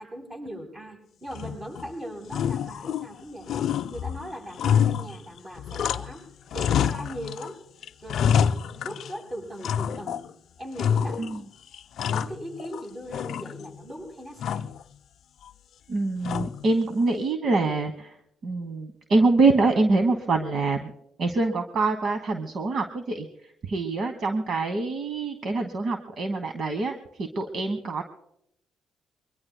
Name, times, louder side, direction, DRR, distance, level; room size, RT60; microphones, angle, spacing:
voice 1, 0.0-3.5 3.9-6.3 6.5-7.6 8.0-10.2 10.6-11.3 12.1-14.7, equal, 25° right, -1 dB, 7.7 m, -39 dB
sound 1, 1.3-1.9 2.3-3.2 3.5-6.2 6.5-7.5 7.8-9.2 9.6-10.3 10.8-11.4 11.7-12.8 13.1-13.8 14.4-14.8 16.2-16.8, left 8 dB, 70° left, 0.4 m, -27 dB
voice 2, 15.9-18.1 18.4-20.9 21.2-23.3 23.6-28.0, right 3 dB, 60° right, 6 dB, 1.1 m, -25 dB
24.0 x 21.5 x 2.2 m, 0.77 s
cardioid pair, 90°, 0 cm